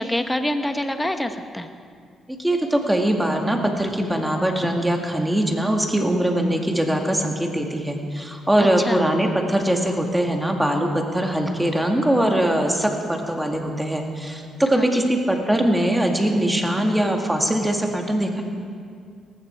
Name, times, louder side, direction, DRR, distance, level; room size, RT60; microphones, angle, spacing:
voice 1, 0.0-1.7 8.6-9.0 14.7-15.1, left 1 dB, 10° left, 8 dB, 1.1 m, -26 dB
voice 2, 2.3-18.4, right 1 dB, 5° right, 2 dB, 2.1 m, -22 dB
18.5 x 15.0 x 4.6 m, 2.2 s
cardioid pair, 90°, 0 cm